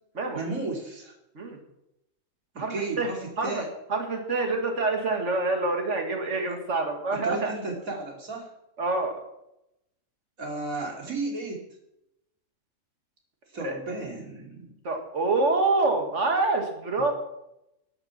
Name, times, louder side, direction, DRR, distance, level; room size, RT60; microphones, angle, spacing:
voice 1, 0.3-1.1 2.5-3.7 7.2-8.5 10.4-11.6 13.5-14.7, right 3 dB, 75° right, 0 dB, 3.0 m, -33 dB
voice 2, 2.6-3.1 3.4-3.6 3.9-7.5 8.8-9.1 13.6-13.7 14.8-17.1, right 3 dB, 60° right, 4 dB, 2.2 m, -26 dB
11.5 x 8.9 x 5.9 m, 0.85 s
omnidirectional pair, 1.5 m